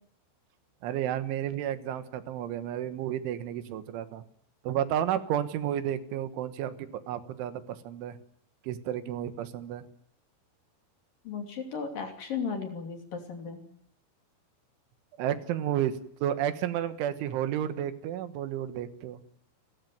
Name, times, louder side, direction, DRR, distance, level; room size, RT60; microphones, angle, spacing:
voice 1, 0.8-4.2 4.7-8.2 8.6-9.9 15.2-19.2, right 11 dB, 80° right, 11 dB, 3.8 m, -32 dB
voice 2, 11.2-13.6, left 5 dB, 50° left, 4 dB, 4.2 m, -35 dB
29.5 x 15.0 x 9.3 m, 0.66 s
omnidirectional pair, 5.5 m